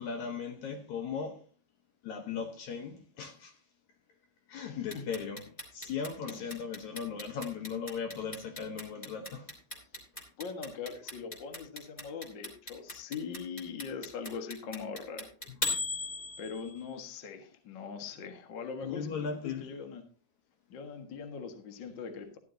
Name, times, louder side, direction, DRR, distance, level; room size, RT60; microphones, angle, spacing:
voice 1, 0.0-1.4 2.0-3.5 4.5-5.4 5.7-9.5 18.8-19.7, left 6 dB, 65° left, 2.1 m, -37 dB
voice 2, 4.6-5.1 6.2-6.6 10.4-15.3 16.4-20.0 20.7-22.4, left 5 dB, 50° left, 1.4 m, -41 dB
Clock, 4.9-16.9, left 2 dB, 15° left, 2.5 m, -37 dB
14.0 x 11.0 x 2.8 m
omnidirectional pair, 4.2 m